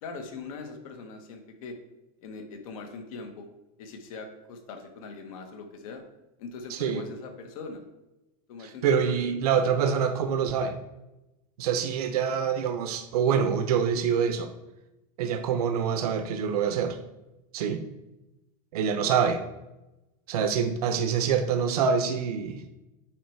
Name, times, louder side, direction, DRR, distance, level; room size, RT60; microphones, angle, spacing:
voice 1, 0.0-1.8 2.2-3.5 3.8-6.0 6.4-7.8 8.5-9.3, left 4 dB, 65° left, 5 dB, 1.2 m, -41 dB
voice 2, 6.7-7.0 8.6-10.8 11.6-14.5 15.2-17.0 17.5-17.8 18.7-19.4 20.3-22.6, right 7 dB, 85° right, 8 dB, 0.8 m, -26 dB
9.0 x 3.2 x 4.5 m, 0.98 s
supercardioid pair, 175°, 19 cm